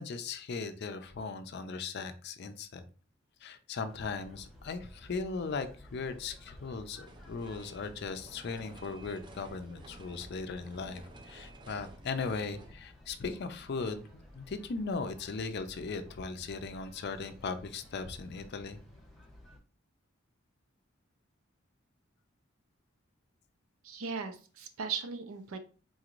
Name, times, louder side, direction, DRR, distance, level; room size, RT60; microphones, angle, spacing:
voice 1, 0.0-2.9 3.4-14.1 14.3-18.8, left 4 dB, 55° left, 9 dB, 0.4 m, -38 dB
sound 1, 3.9-19.6, left 1 dB, ahead, 0.9 m, -55 dB
sound 2, 7.0-12.7, right 2 dB, 20° right, 0.4 m, -54 dB
voice 2, 23.8-25.6, right 5 dB, 85° right, 7 dB, 0.6 m, -38 dB
4.1 x 3.0 x 2.5 m, 0.37 s
head